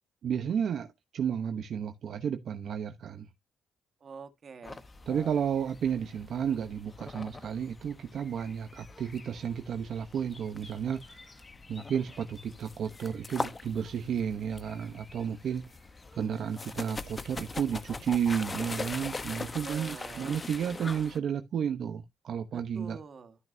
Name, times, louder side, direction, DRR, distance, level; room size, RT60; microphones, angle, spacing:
voice 1, 0.2-0.9 1.1-3.3 5.1-11.4 11.7-15.7 16.1-23.0, right 8 dB, 65° right, 0.9 m, -32 dB
voice 2, 4.0-4.9 19.3-20.3 22.5-23.4, right 5 dB, 45° right, 1.6 m, -46 dB
sound 1, 4.6-21.2, left 3 dB, 25° left, 0.9 m, -42 dB
13.0 x 6.0 x 2.7 m
cardioid pair, 90°, 0 cm